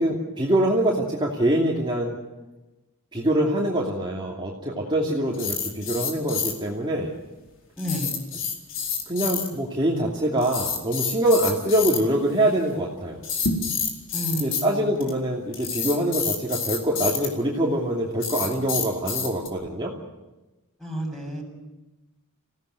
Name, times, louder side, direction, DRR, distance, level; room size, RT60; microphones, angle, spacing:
voice 1, 0.0-2.2 3.1-7.1 9.1-13.2 14.4-19.9, right 1 dB, 20° right, -4 dB, 2.8 m, -24 dB
sound 1, 5.3-6.5 7.8-9.5 10.4-12.0 13.2-14.6 15.0-15.1 15.5-17.3 18.2-19.5, left 6 dB, 60° left, 4.4 m, -28 dB
voice 2, 7.8-8.2 14.1-14.9 20.8-21.4, equal, ahead, 1 dB, 7.4 m, -30 dB
27.0 x 17.0 x 9.5 m, 1.1 s
head